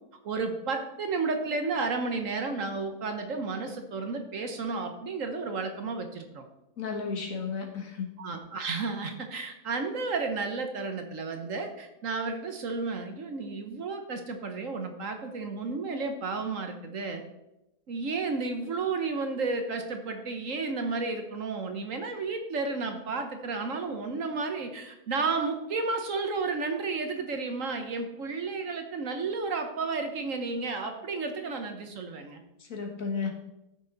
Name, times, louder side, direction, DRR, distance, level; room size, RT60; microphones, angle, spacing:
voice 1, 0.2-6.4 8.2-17.2 17.9-32.4, right 4 dB, 55° right, 6 dB, 1.3 m, -32 dB
voice 2, 6.8-8.1 32.6-33.3, left 5 dB, 55° left, 2 dB, 1.8 m, -33 dB
14.0 x 6.3 x 3.9 m, 0.92 s
omnidirectional pair, 1.7 m